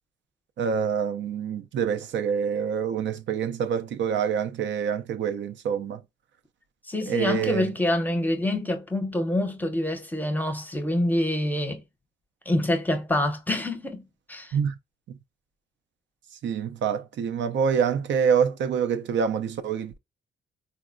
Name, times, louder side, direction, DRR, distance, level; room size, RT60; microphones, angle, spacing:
voice 1, 0.6-6.0 7.1-7.7 14.5-14.7 16.4-20.0, right 7 dB, 70° right, 0.4 m, -26 dB
voice 2, 6.9-11.8 12.5-14.0 14.3-14.5, left 1 dB, 10° left, 0.7 m, -26 dB
3.8 x 2.1 x 2.5 m
cardioid pair, 85°, 19 cm